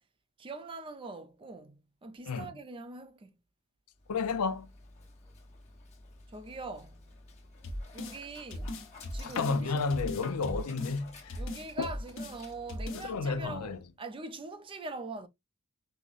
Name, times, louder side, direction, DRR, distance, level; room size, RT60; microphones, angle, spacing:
voice 1, 0.4-3.3 6.3-7.0 7.9-8.8 9.1-9.8 11.4-15.3, right 2 dB, 25° right, 0.4 m, -43 dB
Dog, 3.9-13.9, left 3 dB, 30° left, 1.1 m, -52 dB
voice 2, 4.1-4.7 9.2-11.3 11.8-11.9 12.9-13.8, left 4 dB, 90° left, 0.5 m, -31 dB
sound 1, 7.6-8.2 8.5-9.6 9.9-11.0 11.3-12.4 12.7-13.1, left 1 dB, 60° left, 0.8 m, -38 dB
5.1 x 2.0 x 2.4 m
head